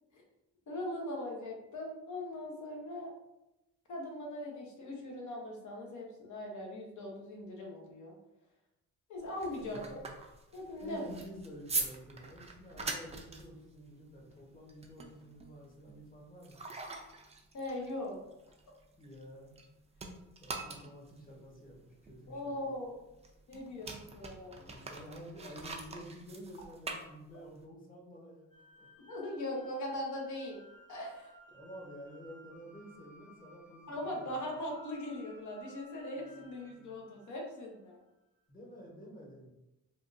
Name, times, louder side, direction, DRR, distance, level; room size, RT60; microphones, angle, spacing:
voice 1, 0.7-3.2 3.9-8.2 9.1-9.8 10.5-11.1 17.5-18.2 22.3-22.9 23.5-24.7 29.1-30.6 30.9-31.3 33.9-38.0, left 1 dB, 65° left, 0 dB, 0.8 m, -40 dB
sound 1, 9.2-19.7 19.9-27.6, right 3 dB, 20° right, 0.4 m, -43 dB
voice 2, 9.6-10.1 10.8-16.6 19.0-19.6 20.4-22.5 24.6-28.9 31.5-34.4 36.2-37.1 38.5-39.5, equal, 25° left, -2 dB, 1.0 m, -50 dB
sound 2, 28.5-37.7, left 1 dB, 90° left, 1.4 m, -59 dB
3.5 x 2.3 x 2.6 m, 0.94 s
cardioid pair, 100°, 32 cm